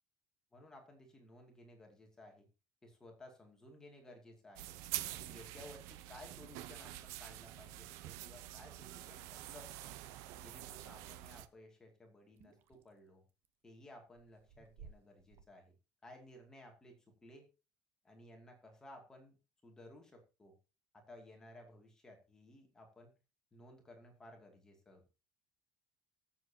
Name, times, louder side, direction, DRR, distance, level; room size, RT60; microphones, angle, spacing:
voice 1, 0.5-2.5 2.8-4.8 5.1-10.0 10.4-13.2 13.6-15.7 16.0-17.5 18.0-19.3 19.6-20.6 20.9-23.1 23.5-25.0, left 1 dB, 10° left, 1 dB, 2.5 m, -57 dB
sound 1, 4.6-11.5, right 14 dB, 65° right, 0.8 m, -46 dB
sound 2, 12.3-13.5 14.1-15.4, right 6 dB, 40° right, 1.0 m, -58 dB
22.0 x 7.5 x 2.9 m, 0.30 s
cardioid pair, 180°, 5 cm